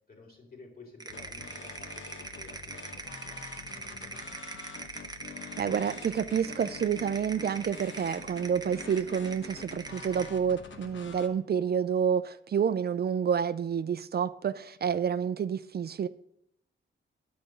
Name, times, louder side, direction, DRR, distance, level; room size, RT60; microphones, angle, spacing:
voice 1, 0.1-4.4 14.8-15.0, left 2 dB, 45° left, 3.5 m, -53 dB
sound 1, 1.0-10.4, right 3 dB, 20° right, 0.8 m, -42 dB
sound 2, 1.1-11.3, left 5 dB, 65° left, 1.2 m, -46 dB
voice 2, 5.6-16.1, right 7 dB, 50° right, 0.4 m, -29 dB
11.0 x 5.1 x 7.6 m
wide cardioid pair, 110°, 20 cm